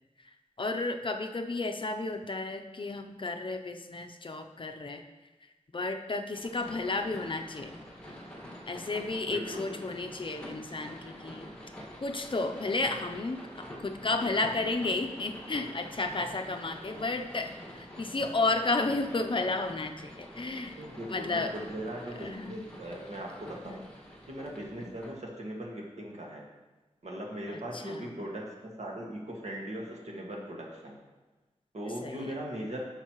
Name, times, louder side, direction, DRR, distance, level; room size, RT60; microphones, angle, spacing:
voice 1, 0.6-5.0 5.7-7.7 8.7-11.5 12.0-20.8 21.1-21.5 22.2-22.7 23.6-23.9 24.8-24.9 27.5-28.1 32.0-32.3, left 3 dB, 45° left, 5 dB, 0.6 m, -32 dB
sound 1, 6.3-25.1, equal, 10° left, 1.7 m, -46 dB
voice 2, 9.3-9.8 20.8-23.8 24.3-26.4 27.0-31.0 31.7-32.8, right 1 dB, 65° right, -2 dB, 1.8 m, -39 dB
10.5 x 6.5 x 3.1 m, 1.2 s
wide cardioid pair, 85°, 12 cm